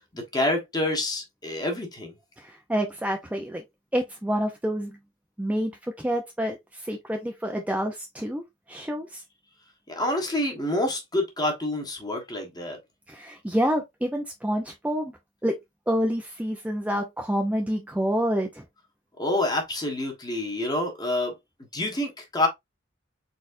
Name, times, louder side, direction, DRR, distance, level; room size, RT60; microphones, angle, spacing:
voice 1, 0.1-2.1 9.9-12.8 19.2-21.3 21.7-22.5, left 1 dB, 20° left, 1.3 m, -27 dB
voice 2, 2.4-3.6 3.9-5.0 5.4-8.4 8.7-9.2 13.1-15.1 15.4-15.6 15.9-18.6, equal, 10° right, 0.5 m, -28 dB
4.2 x 4.0 x 2.5 m
head